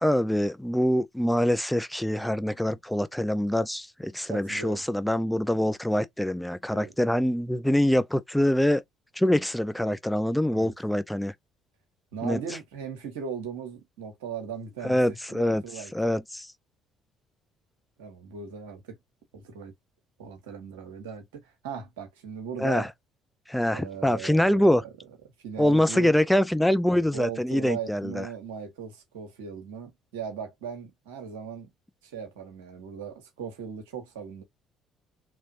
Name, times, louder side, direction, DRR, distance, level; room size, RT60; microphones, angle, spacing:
voice 1, 0.0-8.8 9.2-11.3 12.2-12.4 14.8-15.6 15.9-16.5 22.6-22.9 23.5-24.8 25.6-28.3, left 1 dB, 5° left, 0.4 m, -24 dB
voice 2, 4.2-4.8 6.7-6.9 10.5-10.7 12.1-15.9 18.0-19.0 19.3-19.7 20.2-22.9 23.7-24.9 25.4-26.2 27.1-31.7 32.0-34.4, right 7 dB, 80° right, 1.1 m, -38 dB
3.0 x 2.7 x 2.7 m
hypercardioid pair, 55°, 0 cm